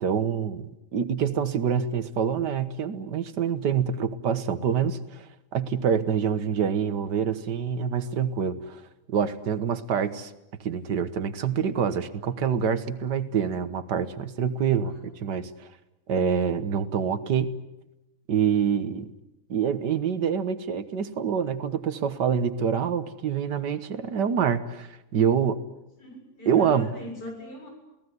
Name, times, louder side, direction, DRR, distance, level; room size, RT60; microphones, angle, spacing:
voice 1, 0.0-5.3 5.5-8.8 9.1-10.3 10.6-15.7 16.1-17.5 18.3-19.1 19.5-25.6 26.5-26.9, right 7 dB, 90° right, 11 dB, 1.9 m, -26 dB
voice 2, 14.8-15.2 26.0-27.7, left 1 dB, 75° left, 2 dB, 7.6 m, -41 dB
28.5 x 18.5 x 9.6 m, 0.96 s
omnidirectional pair, 1.8 m